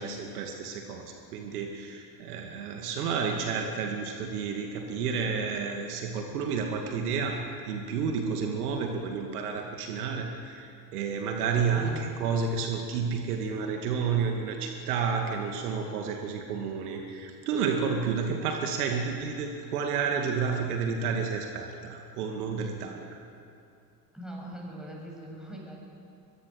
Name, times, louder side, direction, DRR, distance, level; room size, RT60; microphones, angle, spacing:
voice 1, 0.0-23.2, right 5 dB, 65° right, 3 dB, 2.3 m, -31 dB
voice 2, 11.7-12.1 24.1-25.8, right 1 dB, ahead, -2 dB, 7.8 m, -41 dB
24.5 x 22.0 x 6.5 m, 2.5 s
figure-of-eight pair, 70°, 48 cm